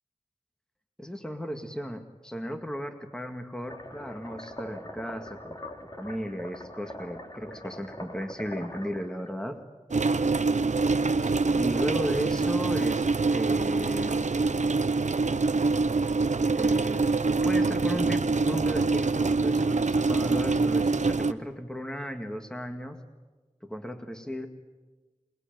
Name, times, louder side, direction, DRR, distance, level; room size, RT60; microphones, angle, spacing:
voice 1, 1.0-5.6 6.0-9.6 11.2-14.5 16.5-17.0 17.4-23.0 23.6-24.5, equal, 5° left, 5 dB, 2.0 m, -35 dB
sound 1, 3.7-9.3, left 1 dB, 35° left, 3.1 m, -42 dB
sound 2, 9.9-21.3, right 3 dB, 90° right, 0.8 m, -25 dB
27.0 x 21.0 x 9.2 m, 1.2 s
wide cardioid pair, 60°, 12 cm